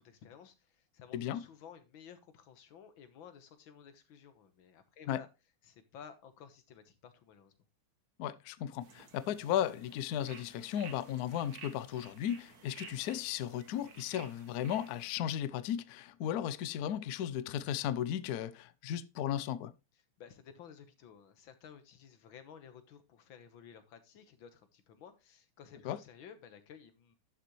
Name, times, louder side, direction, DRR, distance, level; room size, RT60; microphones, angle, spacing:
voice 1, 0.0-5.3 5.6-7.5 20.2-27.2, left 7 dB, 70° left, 1.9 m, -54 dB
voice 2, 8.2-19.7 25.8-26.0, left 10 dB, 90° left, 0.8 m, -35 dB
sound 1, 8.8-15.1, right 6 dB, 50° right, 1.5 m, -54 dB
11.5 x 6.7 x 3.0 m
omnidirectional pair, 2.4 m